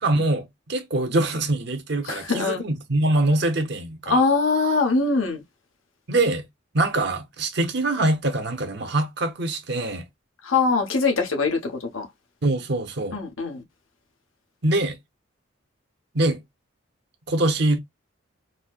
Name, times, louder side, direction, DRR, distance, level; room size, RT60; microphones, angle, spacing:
voice 1, 0.0-4.2 6.1-6.5 6.7-10.1 12.4-13.2 14.6-15.0 16.1-16.4 17.3-17.8, right 2 dB, 55° right, 0.7 m, -23 dB
voice 2, 2.1-2.6 4.1-5.4 10.4-12.1 13.1-13.6, left 4 dB, 85° left, 1.1 m, -22 dB
4.1 x 2.0 x 2.3 m
head